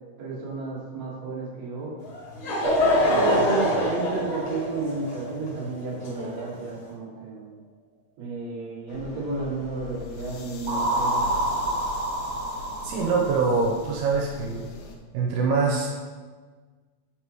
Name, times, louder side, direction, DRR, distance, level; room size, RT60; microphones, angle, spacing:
voice 1, 0.2-1.9 3.1-7.6 8.2-11.3, right 3 dB, 55° right, -6 dB, 2.5 m, -32 dB
Laughter / Crowd, 2.0-6.7, left 1 dB, 60° left, 2.4 m, -27 dB
sound 1, 2.6-5.9 10.7-13.4, right 1 dB, 70° right, 1.7 m, -28 dB
sound 2, 8.9-15.0, left 5 dB, 90° left, 1.8 m, -41 dB
voice 2, 12.8-14.7 15.1-15.9, right 4 dB, 85° right, -1 dB, 2.7 m, -24 dB
8.1 x 5.4 x 3.0 m, 1.4 s
omnidirectional pair, 4.7 m